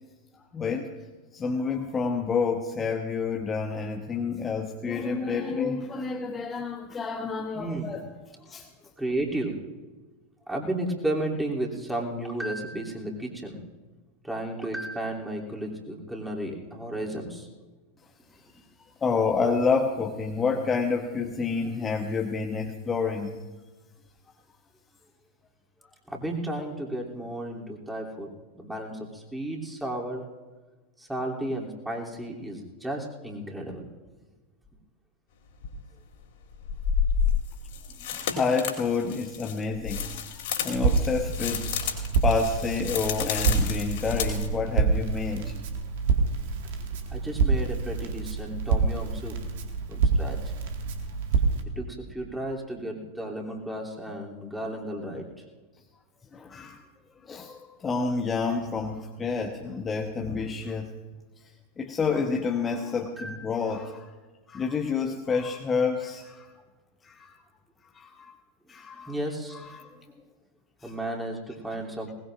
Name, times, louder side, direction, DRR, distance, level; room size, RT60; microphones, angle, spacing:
voice 1, 0.5-0.9 1.3-8.1 8.5-8.7 19.0-23.4 38.1-41.7 42.2-45.6 56.3-56.8 57.2-60.9 61.8-64.1 64.5-66.5 67.0-67.4 67.9-68.3 68.7-69.2 69.5-69.9 70.8-70.9, left 5 dB, 20° left, 2 dB, 1.1 m, -29 dB
voice 2, 7.5-8.0 9.0-9.6 10.5-13.6 14.2-17.5 26.1-28.3 28.5-30.2 31.0-33.8 47.1-49.4 49.9-50.4 51.8-55.3 63.2-63.4 69.1-69.7 70.8-72.1, right 1 dB, 5° right, -2 dB, 3.1 m, -33 dB
sound 1, 35.6-35.7 36.6-44.5, left 7 dB, 55° left, 3.4 m, -31 dB
Crackle, 40.7-51.6, right 4 dB, 55° right, 2.0 m, -27 dB
21.0 x 19.5 x 2.6 m, 1.3 s
figure-of-eight pair, 90°, 0 cm